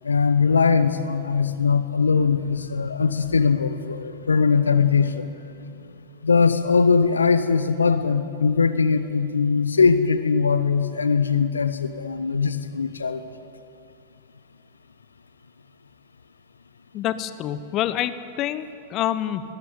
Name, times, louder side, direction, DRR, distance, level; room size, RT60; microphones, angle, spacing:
voice 1, 0.0-5.3 6.2-13.3, left 5 dB, 75° left, 12 dB, 0.9 m, -21 dB
voice 2, 16.9-19.4, left 12 dB, 35° left, 13 dB, 1.0 m, -27 dB
20.0 x 15.0 x 9.8 m, 2.5 s
figure-of-eight pair, 90°, 0 cm